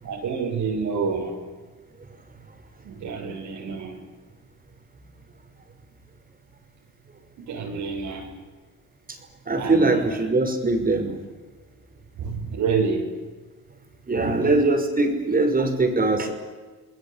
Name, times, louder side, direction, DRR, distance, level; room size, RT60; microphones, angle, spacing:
voice 1, 0.0-1.4 2.8-4.0 7.4-8.3 9.6-10.0 12.2-13.1 14.1-14.5, right 5 dB, 75° right, -1 dB, 6.6 m, -28 dB
voice 2, 9.5-11.2 14.1-16.3, right 2 dB, 30° right, 4 dB, 5.9 m, -21 dB
29.5 x 20.5 x 8.4 m, 1.3 s
cardioid pair, 90°, 30 cm